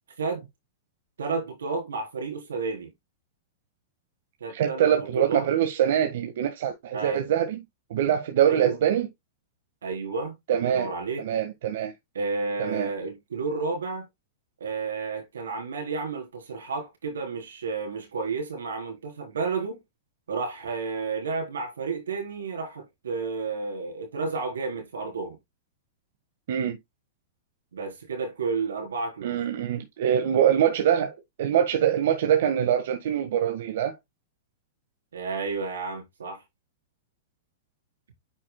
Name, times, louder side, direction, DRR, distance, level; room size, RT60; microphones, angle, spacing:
voice 1, 1.2-2.9 4.4-5.5 6.9-7.3 8.5-8.8 9.8-11.2 12.1-14.1 14.6-19.8 20.3-25.4 27.7-29.4 35.1-36.4, right 4 dB, 85° right, 3.8 m, -31 dB
voice 2, 4.5-7.6 7.9-9.1 10.5-10.9 11.2-11.9 12.6-12.9 26.5-26.8 29.2-34.0, right 9 dB, 65° right, 1.5 m, -24 dB
9.6 x 6.0 x 2.2 m
hypercardioid pair, 120°, 0 cm